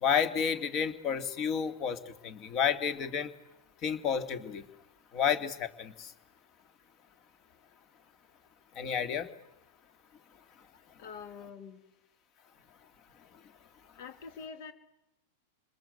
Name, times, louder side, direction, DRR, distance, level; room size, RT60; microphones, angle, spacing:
voice 1, 0.0-3.3 3.8-4.6 5.1-6.1 8.8-9.3, left 7 dB, 40° left, 11 dB, 2.5 m, -30 dB
voice 2, 11.0-11.8 14.0-14.7, left 6 dB, 60° left, 9 dB, 3.3 m, -45 dB
27.5 x 21.0 x 8.2 m, 0.87 s
hypercardioid pair, 115°, 0 cm